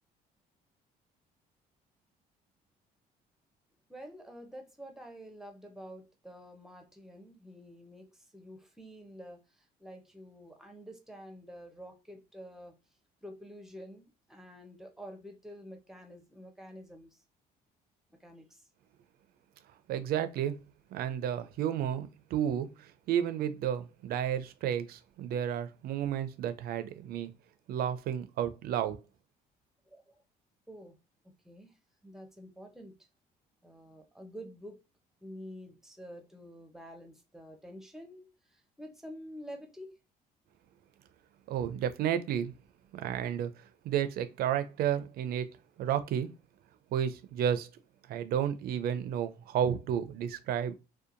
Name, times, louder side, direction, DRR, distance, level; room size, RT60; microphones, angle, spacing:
voice 1, 3.9-12.7 13.2-17.2 18.1-18.7 29.9-30.2 30.7-31.0 31.4-31.8 32.0-32.9 33.6-34.8 35.2-39.9, equal, 5° right, 0.6 m, -48 dB
voice 2, 19.9-20.5 20.9-22.7 23.1-27.3 27.7-29.0 41.5-42.5 42.9-43.5 43.8-45.5 45.8-46.3 46.9-47.7 48.1-50.7, right 9 dB, 65° right, 0.4 m, -31 dB
2.8 x 2.2 x 2.5 m
cardioid pair, 110°, 17 cm